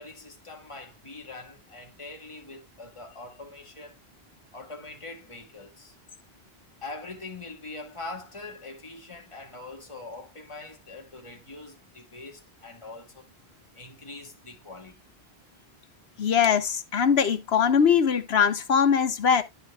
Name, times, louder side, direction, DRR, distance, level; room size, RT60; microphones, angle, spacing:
voice 1, 0.0-4.0 4.5-6.0 6.8-13.3 13.8-15.0 15.6-15.7, left 3 dB, 30° left, 1.9 m, -43 dB
voice 2, 16.2-19.4, left 7 dB, 80° left, 1.3 m, -21 dB
11.5 x 7.6 x 2.2 m
omnidirectional pair, 1.1 m